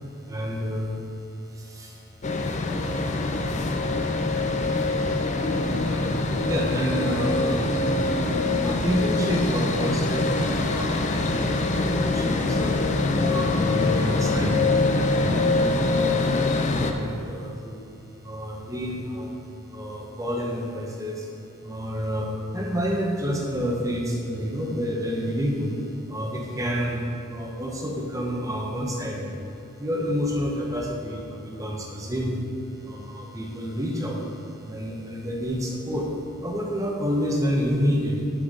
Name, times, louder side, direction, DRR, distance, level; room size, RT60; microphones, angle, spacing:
voice 1, 0.2-2.3 3.7-12.8 13.1-17.8 18.2-19.3 19.7-21.3 21.6-32.5 32.7-36.1 36.4-38.2, equal, 15° right, -1 dB, 0.9 m, -29 dB
sound 1, 2.2-16.9, left 2 dB, 30° left, 0.4 m, -24 dB
6.2 x 5.8 x 6.5 m, 2.6 s
head